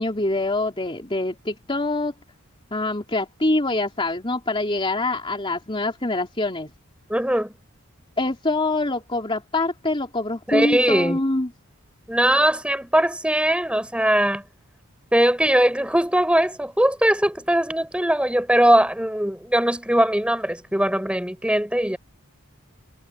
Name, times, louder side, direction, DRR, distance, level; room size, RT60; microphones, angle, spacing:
voice 1, 0.0-2.1 2.7-6.7 8.2-11.5, left 2 dB, 25° left, 3.4 m, -25 dB
voice 2, 7.1-7.5 10.5-11.2 12.1-14.4 15.1-22.0, right 1 dB, 5° right, 5.6 m, -20 dB
head